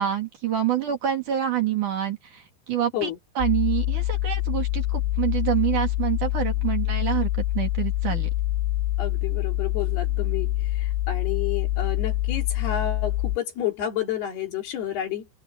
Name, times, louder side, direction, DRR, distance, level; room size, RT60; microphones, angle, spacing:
voice 1, 0.0-3.1 3.4-8.3, right 11 dB, 50° right, 3.8 m, -27 dB
sound 1, 3.4-13.4, left 15 dB, 85° left, 2.8 m, -25 dB
voice 2, 9.0-15.3, left 10 dB, 65° left, 4.7 m, -30 dB
open air
omnidirectional pair, 5.0 m